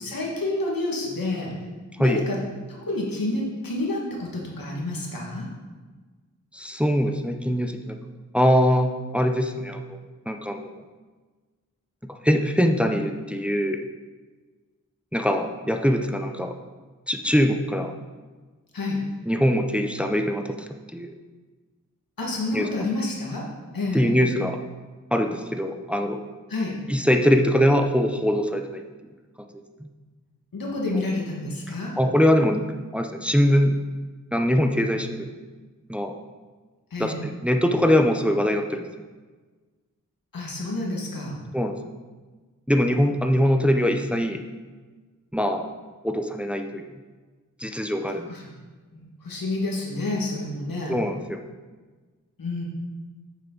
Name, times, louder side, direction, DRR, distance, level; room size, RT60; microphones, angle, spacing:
voice 1, 0.0-1.5 2.0-2.4 2.7-5.5 18.7-19.0 22.2-23.5 23.7-24.1 26.5-26.8 30.5-31.9 36.9-37.2 40.3-41.4 48.3-48.4 49.2-51.0 52.4-52.7, left 2 dB, 90° left, -2 dB, 2.0 m, -29 dB
voice 2, 6.5-8.0 8.3-10.0 10.3-10.7 12.2-13.8 15.1-16.6 17.1-17.9 19.3-21.1 22.5-22.7 23.9-24.6 25.1-26.2 26.9-28.8 29.4-29.9 30.9-31.0 31.9-32.7 32.9-33.8 34.3-35.3 35.9-36.1 37.0-38.8 41.5-41.8 42.7-44.4 45.3-45.6 46.0-46.8 47.6-48.3 50.9-51.4, equal, 5° right, 5 dB, 0.8 m, -22 dB
8.7 x 7.3 x 4.0 m, 1.3 s
cardioid pair, 40°, 33 cm